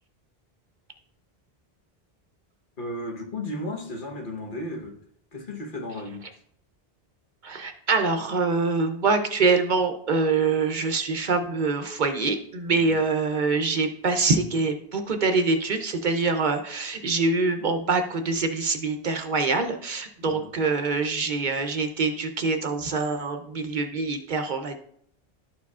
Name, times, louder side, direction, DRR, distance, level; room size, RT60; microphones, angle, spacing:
voice 1, 2.8-5.0 5.3-6.3 12.7-13.0 20.2-20.5, left 1 dB, 55° left, 1 dB, 1.2 m, -35 dB
voice 2, 7.4-24.8, right 4 dB, 55° right, 6 dB, 0.7 m, -25 dB
12.0 x 4.6 x 2.4 m, 0.67 s
omnidirectional pair, 1.0 m